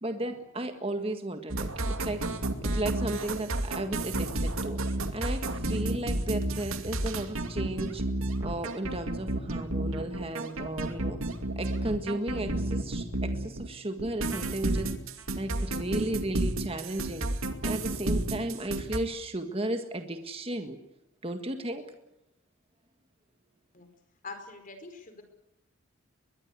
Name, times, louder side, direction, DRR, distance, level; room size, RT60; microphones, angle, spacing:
voice 1, 0.0-4.8 5.1-8.0 8.4-11.2 11.6-14.9 15.4-17.3 17.6-20.8 21.2-21.8, right 1 dB, 25° right, 6 dB, 1.8 m, -34 dB
sound 1, 1.5-13.7 14.0-19.0, right 1 dB, 75° right, 2.5 m, -31 dB
voice 2, 24.2-25.2, left 3 dB, 40° left, 7 dB, 4.8 m, -44 dB
22.5 x 21.0 x 8.3 m, 0.88 s
head